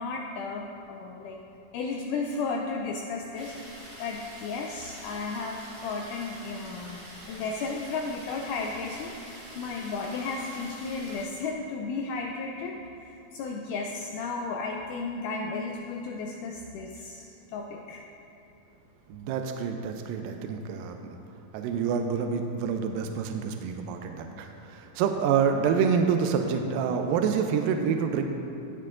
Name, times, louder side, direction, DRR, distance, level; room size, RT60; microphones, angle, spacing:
voice 1, 0.0-1.4 1.7-3.5 4.0-18.0, left 4 dB, 85° left, 1 dB, 1.8 m, -34 dB
sound 1, 3.3-11.2, equal, 35° right, 0.8 m, -46 dB
voice 2, 19.1-21.1 21.5-28.2, right 6 dB, 80° right, 5 dB, 2.2 m, -27 dB
18.0 x 6.7 x 2.5 m, 2.8 s
omnidirectional pair, 4.1 m